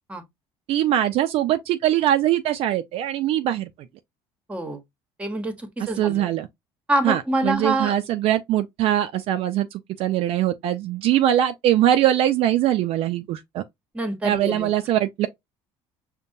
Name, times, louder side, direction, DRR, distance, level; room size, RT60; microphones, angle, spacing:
voice 1, 0.7-3.7 6.0-6.5 7.0-13.6 14.2-15.3, right 12 dB, 60° right, 0.4 m, -22 dB
voice 2, 4.5-4.8 5.2-6.3 6.9-7.9 13.9-14.7, right 1 dB, 10° right, 1.0 m, -26 dB
5.2 x 2.1 x 2.6 m
cardioid pair, 105°, 11 cm